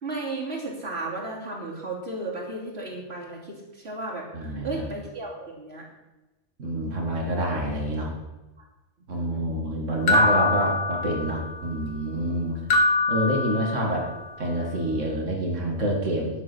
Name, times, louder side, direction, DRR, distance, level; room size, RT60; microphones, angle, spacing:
voice 1, 0.0-5.9 9.1-9.5, right 2 dB, 60° right, -4 dB, 3.2 m, -34 dB
voice 2, 4.3-4.9 6.6-8.1 9.1-12.6 13.1-14.1 14.4-16.4, right 1 dB, 90° right, -1 dB, 2.2 m, -27 dB
sound 1, 10.1-11.5 12.7-14.2, left 2 dB, 90° left, 1.4 m, -23 dB
11.0 x 7.7 x 6.2 m, 1.1 s
omnidirectional pair, 1.3 m